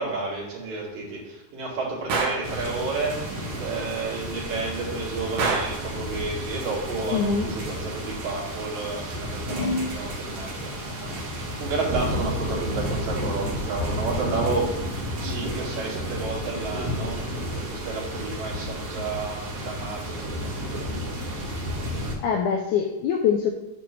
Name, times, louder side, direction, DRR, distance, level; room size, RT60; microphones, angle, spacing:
voice 1, 0.0-14.7 15.2-21.2, right 3 dB, 75° right, -5 dB, 3.6 m, -31 dB
Gunshot gunfire, 2.1-2.5 5.4-5.9, right 4 dB, 90° right, 1.3 m, -25 dB
sound 1, 2.4-22.2, equal, 55° right, 1.8 m, -32 dB
Scissors, 3.5-8.3 8.8-10.0, left 2 dB, 60° left, 0.6 m, -36 dB
voice 2, 7.1-7.5 22.2-23.5, left 7 dB, 85° left, 2 dB, 1.8 m, -23 dB
8.9 x 3.1 x 5.9 m, 0.99 s
omnidirectional pair, 4.0 m